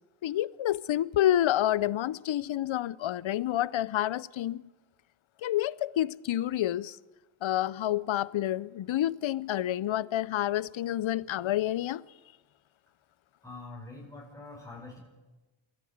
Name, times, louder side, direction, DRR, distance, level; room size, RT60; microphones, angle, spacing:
voice 1, 0.2-4.6 5.4-7.0 7.4-12.0, left 13 dB, 75° left, 0.7 m, -28 dB
voice 2, 13.4-15.0, left 3 dB, 5° left, 5.0 m, -45 dB
23.0 x 16.0 x 8.1 m
cardioid pair, 75°, 48 cm